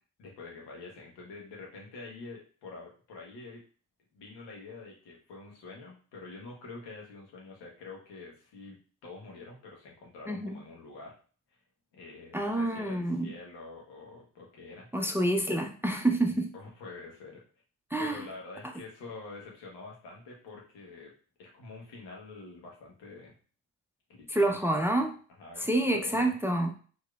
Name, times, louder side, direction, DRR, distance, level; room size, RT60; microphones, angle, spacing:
voice 1, 0.2-3.6 4.1-11.1 11.9-15.2 16.5-17.4 18.0-21.1 21.4-23.3 24.1-24.6 25.4-26.3, left 3 dB, 75° left, -2 dB, 1.2 m, -46 dB
voice 2, 10.3-10.6 12.3-13.3 14.9-16.5 17.9-18.2 24.3-25.1 25.6-26.7, right 1 dB, 5° right, 3 dB, 0.6 m, -28 dB
4.6 x 2.9 x 2.4 m, 0.41 s
hypercardioid pair, 40°, 42 cm